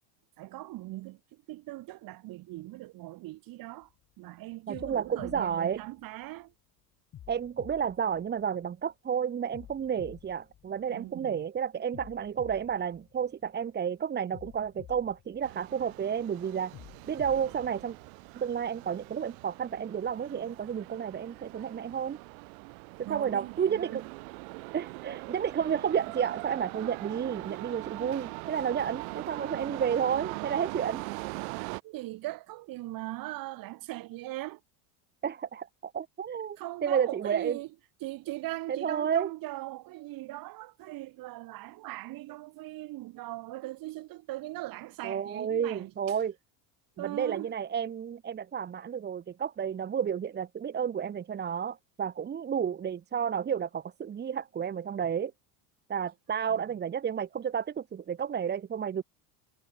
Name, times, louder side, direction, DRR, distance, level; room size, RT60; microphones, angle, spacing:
voice 1, 0.4-3.9 4.2-6.5 10.9-11.4 23.1-24.1 31.8-34.6 36.6-37.7 38.0-46.2 47.0-47.5 56.5-56.7, right 18 dB, 45° right, 5.4 m, -40 dB
sound 1, 3.8-4.1 4.7-6.5 7.1-8.9 9.5-11.3 11.9-13.7 14.3-16.1 16.7-18.5, left 11 dB, 30° left, 4.9 m, -52 dB
voice 2, 4.7-5.8 7.3-16.7 17.1-18.0 18.3-22.2 23.1-24.0 24.7-31.0 35.2-37.6 38.7-39.3 45.0-46.3 47.0-55.3 55.9-59.0, right 8 dB, 20° right, 2.0 m, -31 dB
sound 2, 15.4-31.8, right 38 dB, 65° right, 2.6 m, -41 dB
supercardioid pair, 150°, 46 cm